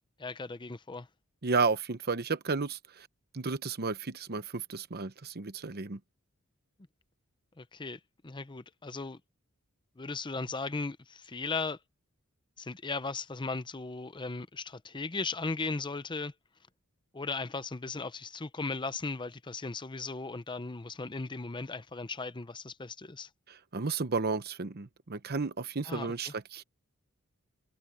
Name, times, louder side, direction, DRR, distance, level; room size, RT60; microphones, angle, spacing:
voice 1, 0.2-1.1 7.6-9.2 10.0-11.8 12.6-16.3 17.1-23.3 25.9-26.3, left 3 dB, 20° left, 0.7 m, -37 dB
voice 2, 1.4-3.1 3.3-6.0 23.5-26.6, right 4 dB, 50° right, 1.0 m, -32 dB
head